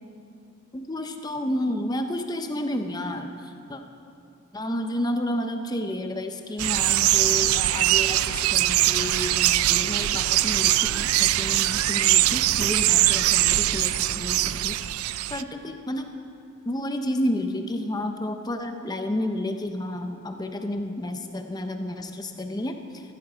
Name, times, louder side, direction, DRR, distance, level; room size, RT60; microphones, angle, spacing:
voice 1, 0.7-3.8 4.5-15.0 15.3-16.1 16.7-22.7, left 1 dB, 20° left, 6 dB, 0.6 m, -31 dB
sound 1, 6.6-15.4, right 15 dB, 80° right, 0.3 m, -22 dB
15.0 x 11.5 x 5.0 m, 2.4 s
head